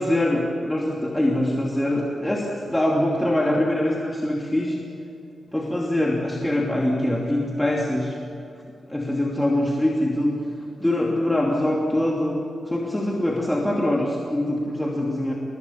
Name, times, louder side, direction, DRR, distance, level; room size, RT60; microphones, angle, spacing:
voice 1, 0.0-4.8 5.5-8.2 8.9-10.3 10.8-15.3, left 1 dB, 10° left, -2 dB, 2.9 m, -23 dB
28.5 x 21.5 x 7.2 m, 2.8 s
cardioid pair, 90°, 0 cm